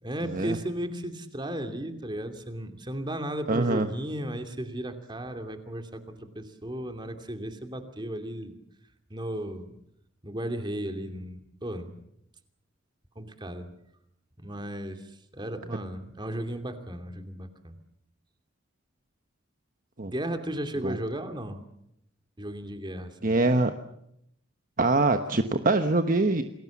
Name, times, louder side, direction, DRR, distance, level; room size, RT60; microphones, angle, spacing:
voice 1, 0.0-8.6 9.1-9.7 10.2-12.0 13.1-13.7 14.4-17.7 20.1-21.6 22.4-23.4, right 1 dB, 25° right, 7 dB, 2.7 m, -35 dB
voice 2, 3.5-3.9 20.0-20.1 20.8-21.0 23.2-23.7 24.8-26.4, right 2 dB, 45° right, 7 dB, 1.1 m, -24 dB
28.5 x 20.0 x 7.3 m, 0.77 s
head